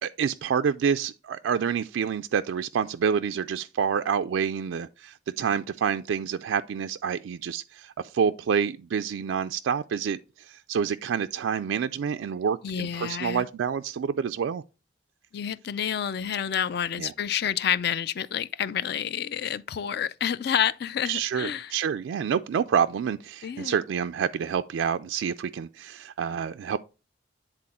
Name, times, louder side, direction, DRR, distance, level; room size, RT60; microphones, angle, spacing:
voice 1, 0.0-14.6 17.0-17.1 21.1-26.8, right 7 dB, 90° right, 0.3 m, -28 dB
voice 2, 12.6-13.5 15.3-21.7 23.4-23.8, left 9 dB, 55° left, 0.4 m, -29 dB
9.9 x 3.8 x 4.2 m
head